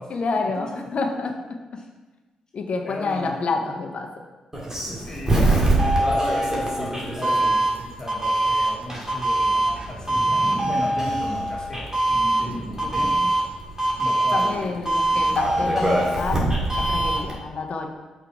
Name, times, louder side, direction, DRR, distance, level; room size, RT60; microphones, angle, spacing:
voice 1, 0.1-1.8 2.5-4.2 5.4-5.6 12.7-13.3 14.3-17.9, left 4 dB, 55° left, 4 dB, 0.9 m, -29 dB
voice 2, 2.8-3.4 4.9-13.2 14.0-15.4, left 1 dB, 30° left, -3 dB, 1.8 m, -36 dB
Doorbell, 4.5-17.3, right 1 dB, 20° right, 2.3 m, -22 dB
sound 1, 9.5-13.2, equal, 40° right, 1.5 m, -38 dB
6.0 x 4.6 x 4.7 m, 1.2 s
hypercardioid pair, 40°, 3 cm